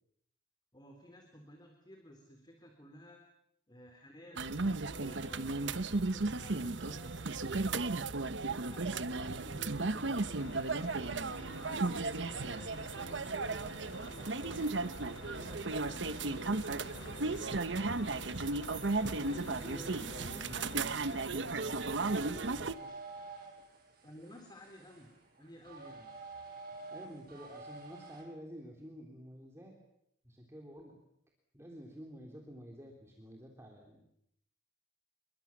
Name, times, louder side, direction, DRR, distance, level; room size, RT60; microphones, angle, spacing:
voice 1, 0.7-3.2 3.7-7.9 8.6-14.8 15.2-18.5 19.2-21.2 22.2-23.0 24.0-25.1 25.4-26.1, equal, 25° left, 4 dB, 3.6 m, -55 dB
sound 1, 4.4-22.7, right 3 dB, 80° right, 1.1 m, -35 dB
sound 2, 10.2-21.3, left 3 dB, 80° left, 1.0 m, -51 dB
voice 2, 19.4-21.0 26.9-29.8 30.2-31.0 31.5-34.1, equal, 15° right, 1 dB, 3.5 m, -50 dB
sound 3, 21.4-28.2, right 3 dB, 55° right, 6.7 m, -49 dB
28.5 x 23.0 x 7.3 m, 0.76 s
head